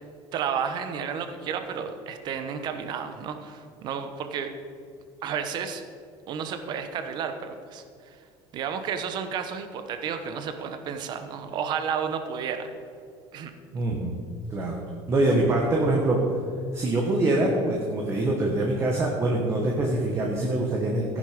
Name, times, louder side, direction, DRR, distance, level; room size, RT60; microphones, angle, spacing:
voice 1, 0.3-4.5 5.2-5.8 6.3-8.2 8.5-12.7 13.3-13.5, right 7 dB, 45° right, 8 dB, 1.1 m, -32 dB
voice 2, 13.7-14.1 14.5-14.8 15.1-16.2 16.7-21.2, right 2 dB, 25° right, -1 dB, 1.6 m, -24 dB
14.5 x 11.0 x 5.3 m, 2.3 s
cardioid pair, 160°, 10 cm